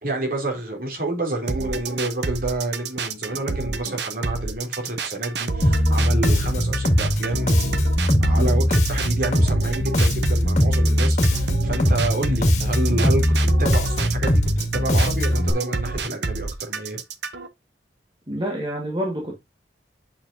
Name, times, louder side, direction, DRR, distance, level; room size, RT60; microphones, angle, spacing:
voice 1, 0.0-7.9 8.2-17.0, right 2 dB, 50° right, 3.3 m, -29 dB
sound 1, 1.5-17.5, right 4 dB, 70° right, 0.9 m, -29 dB
Bass guitar, 5.6-15.5, left 1 dB, 40° left, 2.0 m, -20 dB
voice 2, 18.3-19.4, equal, 25° right, 1.6 m, -28 dB
8.6 x 5.9 x 2.7 m
head